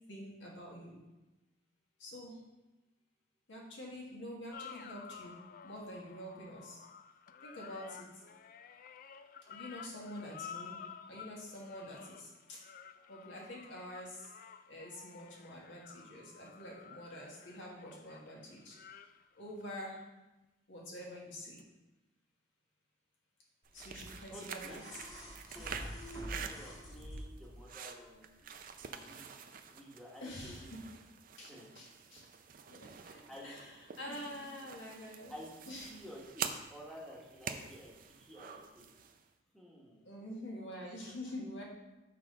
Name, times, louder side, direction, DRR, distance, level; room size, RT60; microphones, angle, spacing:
voice 1, 0.1-1.0 2.0-2.4 3.5-6.8 7.4-8.2 9.5-12.6 13.1-14.3 14.7-18.8 19.3-20.0 20.7-21.6 23.7-25.0 30.2-30.8 31.4-32.2 32.7-35.3 35.7-35.9 40.0-41.6, left 1 dB, 75° left, -3 dB, 1.7 m, -47 dB
sound 1, 4.5-20.1 21.6-21.7, left 7 dB, 45° left, 0.3 m, -52 dB
sound 2, 23.7-39.3, right 7 dB, 45° right, 0.4 m, -47 dB
sound 3, 23.8-27.6 28.8-28.9, equal, 25° left, 1.3 m, -46 dB
voice 2, 24.3-24.8 25.5-25.9 26.3-28.5 28.8-29.3 29.6-30.7 31.5-31.7 33.3-33.5 34.1-34.4 35.3-38.9 39.5-40.1, equal, ahead, -5 dB, 1.2 m, -52 dB
6.5 x 3.9 x 5.3 m, 1.0 s
head